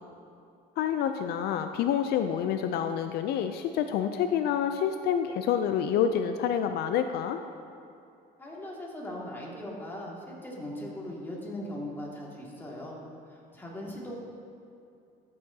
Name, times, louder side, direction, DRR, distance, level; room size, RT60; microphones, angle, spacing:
voice 1, 0.8-7.4, left 8 dB, 75° left, 8 dB, 0.4 m, -28 dB
voice 2, 8.4-13.0 13.3-14.2, left 1 dB, 10° left, -4 dB, 2.0 m, -39 dB
13.5 x 6.8 x 2.7 m, 2.6 s
cardioid pair, 110°, 17 cm